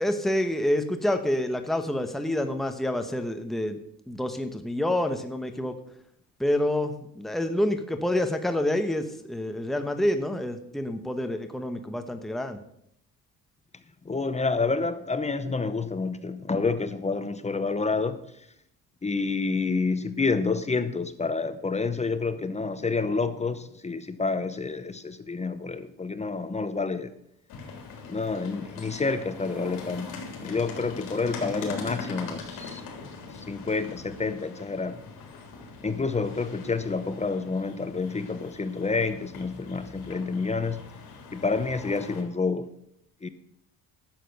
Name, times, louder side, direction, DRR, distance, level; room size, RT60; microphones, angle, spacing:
voice 1, 0.0-3.8 4.1-5.8 6.4-12.6, left 1 dB, ahead, 6 dB, 1.0 m, -27 dB
voice 2, 14.0-18.2 19.0-27.1 28.1-32.8 33.5-35.0 35.8-40.8 41.3-42.7 43.2-43.3, left 4 dB, 20° left, 11 dB, 0.8 m, -28 dB
sound 1, 27.5-42.2, left 4 dB, 75° left, 3.5 m, -41 dB
11.5 x 7.6 x 6.5 m, 0.73 s
cardioid pair, 115°, 36 cm